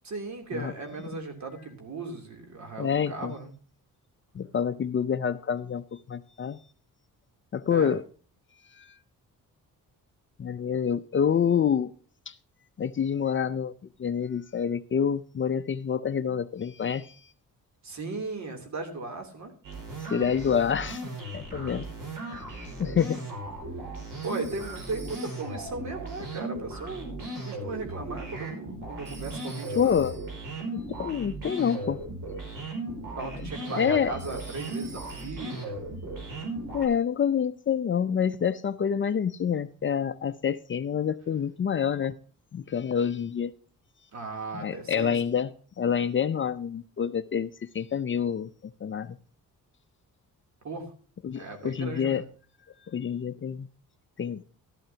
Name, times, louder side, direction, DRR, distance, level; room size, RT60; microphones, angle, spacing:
voice 1, 0.0-3.5 7.7-7.9 17.8-19.5 24.2-30.0 33.2-35.8 44.1-45.2 50.6-50.8 51.3-52.3, right 3 dB, 55° right, 3.1 m, -37 dB
voice 2, 2.8-3.3 4.3-6.6 7.5-8.0 8.8-8.9 10.4-11.9 12.3-12.4 12.8-13.7 14.0-17.1 20.1-21.0 21.3-21.9 22.8-23.2 29.8-30.1 30.7-32.0 33.7-34.2 36.7-42.2 42.5-43.5 44.5-45.5 45.8-49.2 51.2-52.2 52.9-53.7 54.2-54.4, left 7 dB, 35° left, 0.6 m, -27 dB
sound 1, 19.6-36.9, right 2 dB, 75° right, 5.4 m, -37 dB
Telephone, 24.2-25.7 29.1-30.5 34.2-35.6, right 3 dB, 35° right, 6.1 m, -49 dB
13.0 x 12.0 x 2.8 m
cardioid pair, 110°, 34 cm